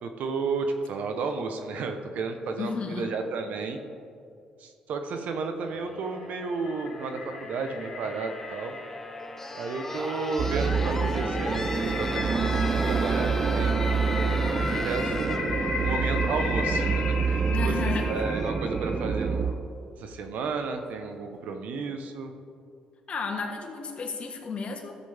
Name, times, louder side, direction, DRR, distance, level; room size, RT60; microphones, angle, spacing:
voice 1, 0.0-3.8 4.6-8.8 9.5-13.8 14.5-15.4 15.8-19.6 20.0-22.3, right 4 dB, 70° right, 6 dB, 0.9 m, -33 dB
voice 2, 2.6-3.1 17.5-18.1 23.1-25.0, left 5 dB, 50° left, 2 dB, 1.5 m, -33 dB
sound 1, 5.6-19.6 20.8-20.9, left 2 dB, 15° left, 0.8 m, -38 dB
Creepy build up tone, 5.9-19.3, left 4 dB, 80° left, 1.7 m, -37 dB
sound 2, 10.4-19.5, right 5 dB, 40° right, 0.6 m, -27 dB
13.5 x 7.5 x 3.5 m, 2.4 s
supercardioid pair, 75°, 3 cm